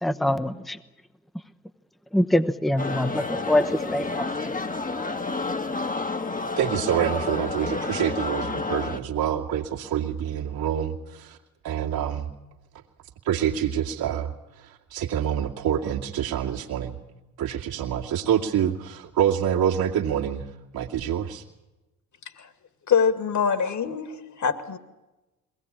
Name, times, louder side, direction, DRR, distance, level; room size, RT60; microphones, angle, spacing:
voice 1, 0.0-0.8 2.1-4.5, left 1 dB, ahead, 9 dB, 1.0 m, -24 dB
sound 1, 2.8-9.0, left 3 dB, 20° left, 1.4 m, -30 dB
voice 2, 6.6-11.4 11.6-12.3 13.3-14.3 14.9-16.9 17.4-20.5 20.7-21.4, right 9 dB, 55° right, 0 dB, 2.2 m, -26 dB
voice 3, 22.9-24.8, left 6 dB, 40° left, 11 dB, 2.1 m, -24 dB
22.5 x 17.5 x 8.7 m, 1.0 s
hypercardioid pair, 55°, 44 cm